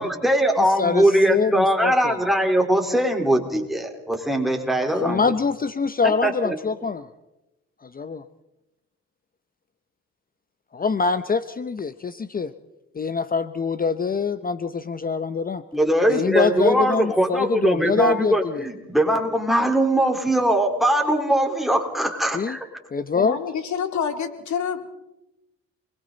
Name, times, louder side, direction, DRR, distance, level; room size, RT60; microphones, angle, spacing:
voice 1, 0.0-5.2 6.0-6.5 15.7-22.6, right 1 dB, ahead, 2 dB, 4.0 m, -21 dB
voice 2, 0.8-2.2 5.0-7.0 7.9-8.2 10.7-12.5 12.9-15.6 16.1-18.6 22.3-22.6 22.9-23.4, left 5 dB, 30° left, 12 dB, 0.8 m, -24 dB
voice 3, 23.1-24.9, left 7 dB, 70° left, 6 dB, 3.0 m, -27 dB
29.5 x 22.0 x 4.0 m, 0.93 s
cardioid pair, 90°, 30 cm